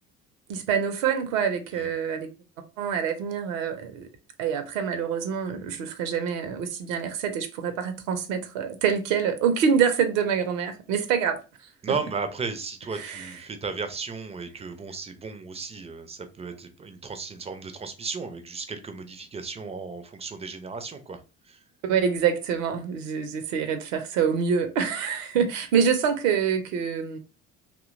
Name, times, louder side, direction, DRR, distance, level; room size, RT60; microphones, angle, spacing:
voice 1, 0.5-2.3 2.8-4.1 4.4-11.4 11.9-12.0 13.0-13.3 21.8-27.2, right 7 dB, 65° right, 0.6 m, -26 dB
voice 2, 11.8-21.2 21.5-21.6, right 4 dB, 15° right, 0.4 m, -35 dB
2.7 x 2.1 x 2.4 m
figure-of-eight pair, 60°, 41 cm